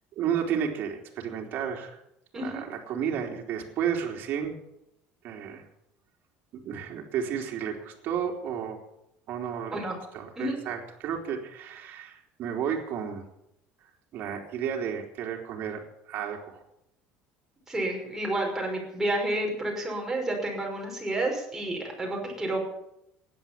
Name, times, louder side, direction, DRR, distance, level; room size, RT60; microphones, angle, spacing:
voice 1, 0.1-2.0 2.3-4.6 5.2-5.6 6.5-8.8 9.3-9.8 10.1-13.3 14.1-16.6, right 8 dB, 50° right, 1 dB, 3.6 m, -32 dB
voice 2, 2.3-2.6 9.7-10.0 10.4-10.6 17.7-22.7, right 1 dB, 10° right, -1 dB, 5.7 m, -30 dB
16.5 x 11.0 x 7.5 m, 0.80 s
cardioid pair, 145°, 4 cm